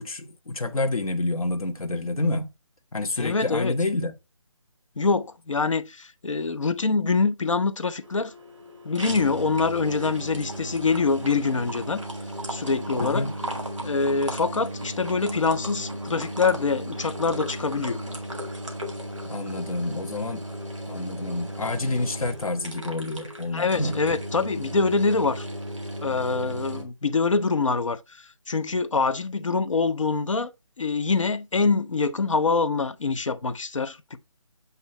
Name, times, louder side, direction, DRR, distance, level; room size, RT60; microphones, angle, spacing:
voice 1, 0.0-2.5 2.9-4.1 13.0-13.3 19.3-20.4 20.9-24.0, left 2 dB, 90° left, 1.3 m, -28 dB
voice 2, 3.2-3.7 5.0-8.3 8.8-12.0 12.5-13.3 13.8-18.0 23.5-25.5 26.0-30.5 30.8-34.2, left 4 dB, 65° left, 0.8 m, -25 dB
sound 1, 8.0-26.8, right 1 dB, ahead, 0.6 m, -35 dB
8.3 x 2.8 x 4.2 m
hypercardioid pair, 175°, 18 cm